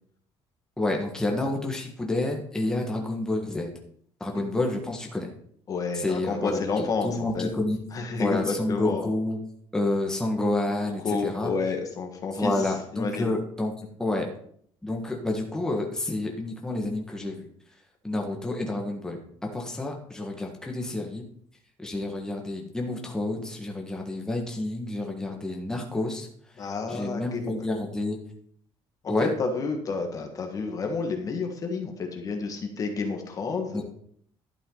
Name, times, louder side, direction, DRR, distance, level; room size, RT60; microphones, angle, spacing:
voice 1, 0.8-3.7 4.2-5.3 5.9-7.8 8.2-9.4 9.7-11.5 12.3-13.7 14.0-14.3 14.8-17.5 18.0-21.2 21.8-26.3 26.9-28.2 29.1-29.3 33.7-33.8, left 2 dB, 5° left, 1 dB, 1.6 m, -29 dB
voice 2, 5.7-7.5 7.9-9.0 11.0-13.3 26.6-27.5 29.0-29.1 29.4-33.8, left 4 dB, 35° left, 4 dB, 1.7 m, -30 dB
12.0 x 8.4 x 4.0 m, 0.63 s
cardioid pair, 140°, 10 cm